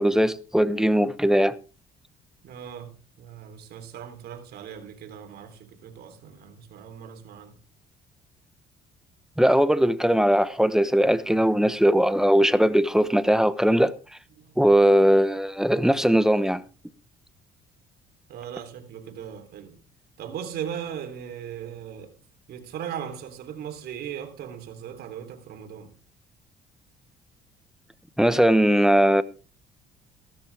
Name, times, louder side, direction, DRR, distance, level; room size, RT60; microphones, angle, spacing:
voice 1, 0.0-1.5 9.4-13.9 14.6-16.6 28.2-29.2, equal, 5° right, 1.0 m, -20 dB
voice 2, 2.4-7.6 14.4-14.6 18.3-19.8 20.2-22.2 22.5-26.0, right 9 dB, 70° right, 3.5 m, -38 dB
16.5 x 13.0 x 3.6 m
cardioid pair, 110°, 17 cm